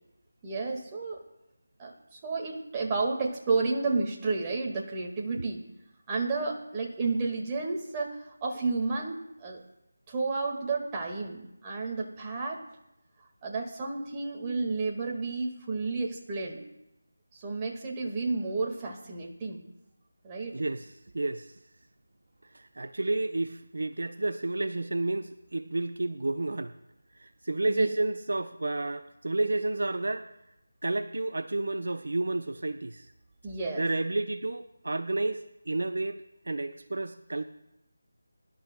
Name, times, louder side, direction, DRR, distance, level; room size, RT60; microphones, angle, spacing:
voice 1, 0.4-1.2 1.8-5.6 6.1-9.6 10.1-12.6 13.4-16.6 17.3-19.6 20.2-20.6 27.7-27.9 33.4-33.8, right 3 dB, 20° right, -1 dB, 1.8 m, -31 dB
voice 2, 20.5-20.9 21.1-21.5 22.5-26.7 27.2-30.3 30.8-33.1 33.8-37.4, right 2 dB, 65° right, 11 dB, 0.6 m, -31 dB
24.0 x 12.0 x 2.2 m, 0.87 s
figure-of-eight pair, 165°, 0 cm